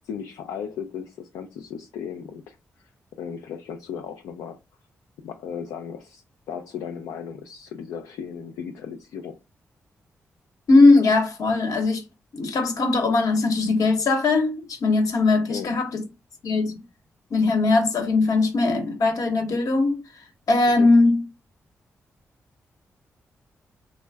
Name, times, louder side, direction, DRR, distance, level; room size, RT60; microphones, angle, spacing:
voice 1, 0.1-2.9 3.2-4.6 5.2-9.4 15.5-15.7 20.8-20.9, left 7 dB, 85° left, 0.4 m, -36 dB
voice 2, 10.7-12.0 12.3-16.0 16.4-16.8 17.3-20.0 20.5-21.2, left 3 dB, 70° left, 1.0 m, -20 dB
3.4 x 2.0 x 3.3 m
supercardioid pair, 45°, 6 cm